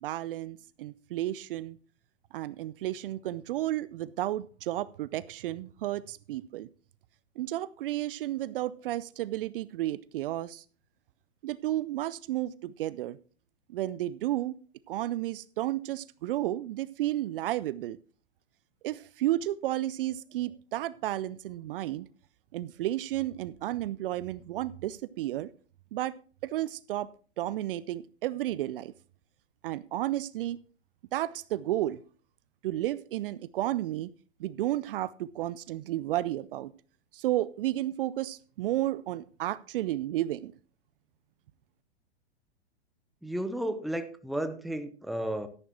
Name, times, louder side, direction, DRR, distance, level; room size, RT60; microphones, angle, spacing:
voice 1, 0.0-1.8 2.3-6.7 7.4-10.6 11.4-13.2 13.7-14.5 14.9-18.0 18.8-22.1 22.5-25.5 25.9-26.1 26.4-27.1 27.4-28.9 29.6-30.6 31.1-32.0 32.6-34.1 34.4-36.7 37.1-40.5, right 14 dB, 55° right, 19 dB, 0.5 m, -32 dB
voice 2, 43.2-45.5, right 1 dB, ahead, 10 dB, 0.8 m, -33 dB
13.0 x 11.0 x 3.0 m, 0.39 s
hypercardioid pair, 110°, 33 cm